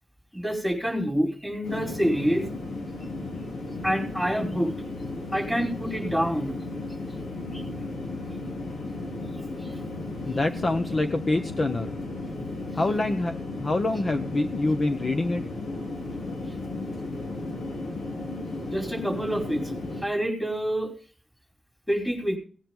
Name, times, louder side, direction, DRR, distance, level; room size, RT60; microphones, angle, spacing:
voice 1, 0.3-2.5 3.8-4.7 5.3-6.6 7.5-7.6 9.6-9.7 18.7-19.7 20.0-20.9 21.9-22.4, equal, 5° left, 2 dB, 4.8 m, -27 dB
sound 1, 1.6-20.0, left 2 dB, 80° left, 3.3 m, -34 dB
voice 2, 10.3-11.9 12.7-13.3 13.6-15.4, left 2 dB, 40° left, 7 dB, 0.9 m, -26 dB
18.0 x 10.0 x 3.8 m, 0.41 s
wide cardioid pair, 115°, 0 cm